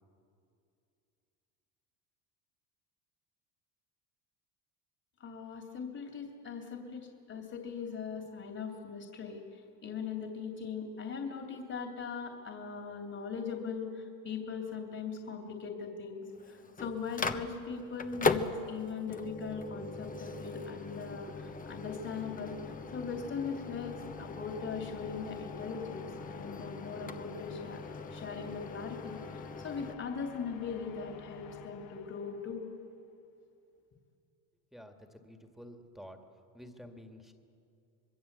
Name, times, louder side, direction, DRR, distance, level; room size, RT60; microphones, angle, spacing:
voice 1, 5.2-22.6 22.9-27.8 28.1-32.6, left 5 dB, 35° left, 3 dB, 3.0 m, -40 dB
Microwave oven, 16.3-30.0, left 3 dB, 20° left, 1.1 m, -39 dB
sound 1, 19.8-32.9, left 10 dB, 55° left, 1.2 m, -51 dB
voice 2, 34.7-36.2 36.5-37.3, equal, ahead, 4 dB, 2.0 m, -50 dB
25.5 x 21.5 x 8.2 m, 2.5 s
supercardioid pair, 110°, 41 cm